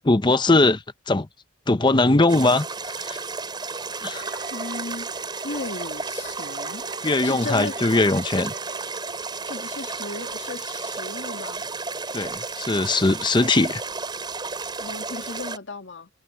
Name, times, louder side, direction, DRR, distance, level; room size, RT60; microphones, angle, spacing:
voice 1, 0.0-1.3 1.7-3.3 4.0-4.4 7.0-8.5 12.1-13.8, left 2 dB, 25° left, 0.7 m, -21 dB
sound 1, 2.3-15.6, right 4 dB, 25° right, 4.9 m, -33 dB
Wind instrument woodwind instrument, 4.0-9.2, right 4 dB, 50° right, 5.6 m, -44 dB
voice 2, 4.5-5.1 5.4-6.9 7.2-7.8 9.4-11.6 14.8-16.1, left 3 dB, 65° left, 1.8 m, -35 dB
head